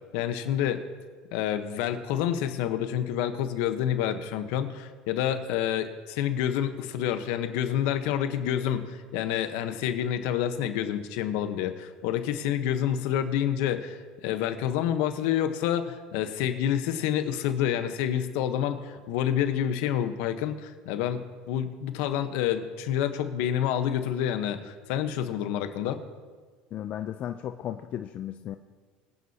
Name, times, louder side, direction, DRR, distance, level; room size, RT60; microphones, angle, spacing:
voice 1, 0.1-0.8 1.3-26.0, left 10 dB, 75° left, 9 dB, 1.1 m, -28 dB
voice 2, 26.7-28.6, left 11 dB, 45° left, 8 dB, 0.5 m, -35 dB
24.0 x 9.6 x 2.9 m, 1.5 s
supercardioid pair, 115°, 3 cm